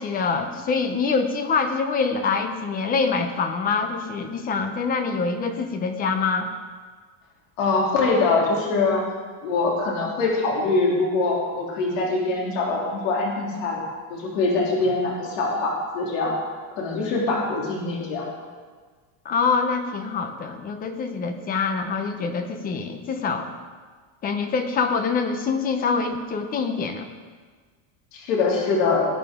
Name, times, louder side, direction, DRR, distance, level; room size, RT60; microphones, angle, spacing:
voice 1, 0.0-6.5 19.2-23.5 24.2-27.1, left 5 dB, 20° left, 7 dB, 0.8 m, -25 dB
voice 2, 7.6-9.0 9.4-16.3 16.7-18.3 28.1-29.1, left 3 dB, 75° left, -2 dB, 3.2 m, -23 dB
18.5 x 9.2 x 3.7 m, 1.5 s
cardioid pair, 170°, 40 cm